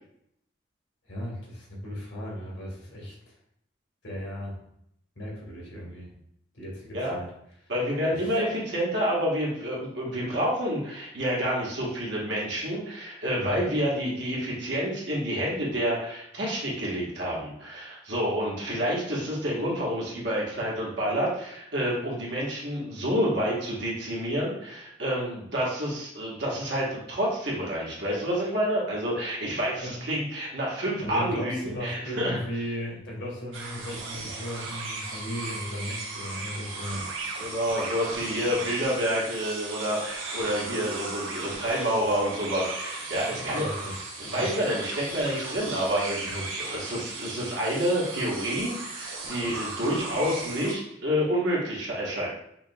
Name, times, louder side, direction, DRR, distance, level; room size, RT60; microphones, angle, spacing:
voice 1, 1.1-3.3 4.0-4.6 5.2-6.1 6.5-7.3 8.1-8.2 13.4-13.6 29.8-30.0 31.0-37.1 43.3-44.0 44.2-44.5 46.3-46.4, equal, 70° left, -3 dB, 1.4 m, -36 dB
voice 2, 7.7-32.4 37.4-43.7 44.2-52.3, equal, 60° right, -4 dB, 1.3 m, -28 dB
sound 1, 33.5-50.7, right 3 dB, 90° right, 0.9 m, -36 dB
5.9 x 2.9 x 2.3 m, 0.73 s
head